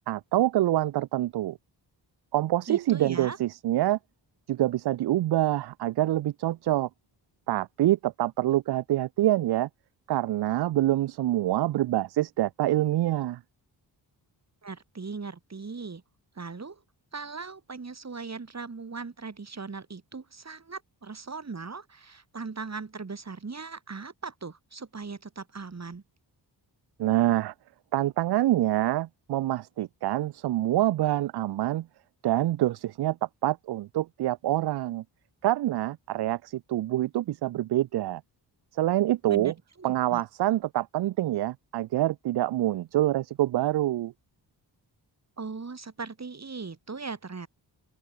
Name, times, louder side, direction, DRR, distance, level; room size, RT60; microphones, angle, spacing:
voice 1, 0.1-1.6 2.3-4.0 4.5-6.9 7.5-9.7 10.1-13.4 27.0-27.5 27.9-31.9 32.2-33.2 33.4-35.0 35.4-38.2 38.7-39.5 39.8-44.1, right 14 dB, 65° right, 0.5 m, -26 dB
voice 2, 2.7-3.4 14.6-16.0 16.3-16.8 17.1-26.0 39.3-40.2 45.4-47.5, right 4 dB, 35° right, 6.3 m, -39 dB
open air
cardioid pair, 100°, 44 cm